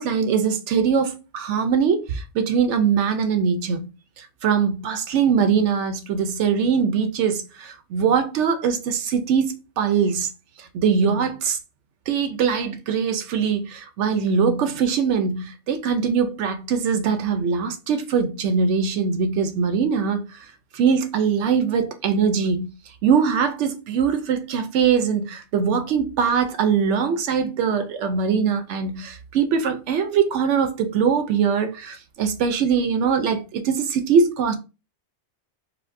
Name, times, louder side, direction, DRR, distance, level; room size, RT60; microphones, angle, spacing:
voice 1, 0.0-3.9 4.2-10.3 10.6-11.6 12.1-20.2 20.7-22.7 23.0-34.6, right 6 dB, 85° right, 0.9 m, -22 dB
4.5 x 2.1 x 2.5 m
omnidirectional pair, 1.2 m